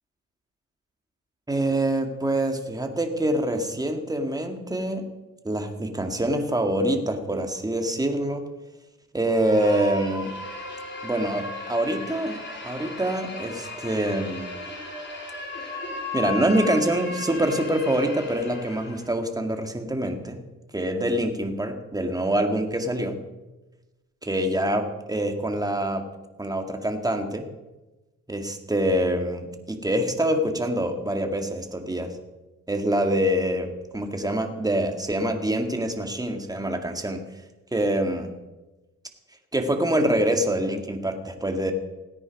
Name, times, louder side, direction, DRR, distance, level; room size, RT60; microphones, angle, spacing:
voice 1, 1.5-5.0 5.4-8.4 9.1-10.3 11.0-14.5 16.1-20.4 20.7-23.2 24.2-26.0 26.4-27.5 28.3-32.1 32.7-37.2 37.7-38.3 39.5-41.7, right 1 dB, 10° right, 4 dB, 2.0 m, -25 dB
sound 1, 9.2-19.1, left 2 dB, 35° left, 3.9 m, -36 dB
17.5 x 9.6 x 5.4 m, 1.1 s
cardioid pair, 90°, 30 cm